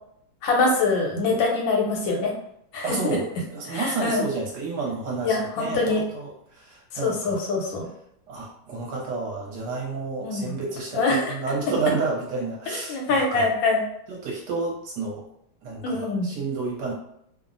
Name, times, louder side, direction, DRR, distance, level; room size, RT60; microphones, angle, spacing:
voice 1, 0.4-2.3 2.7-3.0 3.7-4.2 5.2-6.0 7.0-7.9 10.2-10.5 10.9-11.3 12.9-13.8 15.8-16.3, left 3 dB, 80° left, -1 dB, 1.4 m, -24 dB
voice 2, 2.8-7.4 8.3-13.5 14.1-15.3 15.6-16.9, right 4 dB, 70° right, -2 dB, 1.2 m, -30 dB
3.2 x 2.0 x 2.5 m, 0.73 s
omnidirectional pair, 2.1 m